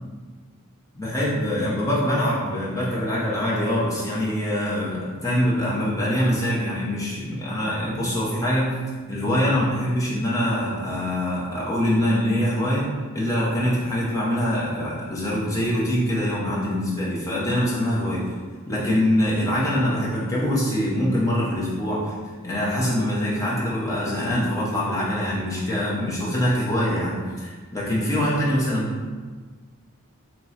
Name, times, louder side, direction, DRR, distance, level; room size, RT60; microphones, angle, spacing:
voice 1, 0.9-8.8 9.1-18.2 18.7-22.1 22.4-29.1, equal, 15° left, -7 dB, 0.9 m, -24 dB
3.0 x 3.0 x 4.1 m, 1.4 s
head